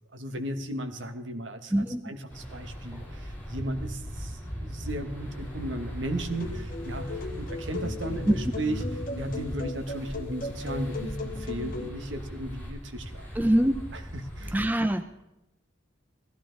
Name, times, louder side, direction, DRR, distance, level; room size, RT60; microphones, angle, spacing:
voice 1, 0.1-8.9 9.1-13.3 13.9-14.6, right 1 dB, 65° right, 7 dB, 1.3 m, -36 dB
sound 1, 2.3-14.6, equal, 10° left, 5.8 m, -38 dB
sound 2, 6.3-11.9, left 3 dB, 45° left, 1.3 m, -37 dB
voice 2, 13.4-13.7 14.5-15.2, right 1 dB, 10° right, 8 dB, 0.5 m, -24 dB
16.0 x 14.0 x 3.9 m, 0.91 s
head